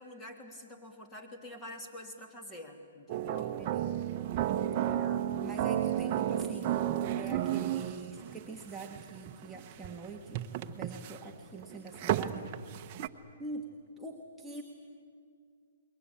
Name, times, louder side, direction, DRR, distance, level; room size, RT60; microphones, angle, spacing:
voice 1, 0.0-3.6 4.9-5.3, left 1 dB, 15° left, 3 dB, 3.0 m, -47 dB
sound 1, 3.1-13.1, right 11 dB, 35° right, 1.0 m, -33 dB
voice 2, 3.6-3.9 4.8-5.0 5.4-6.8 7.2-10.4 10.7-12.5 13.4-14.6, right 3 dB, 5° right, -4 dB, 1.6 m, -44 dB
27.5 x 22.0 x 8.9 m, 2.1 s
hypercardioid pair, 150°, 0 cm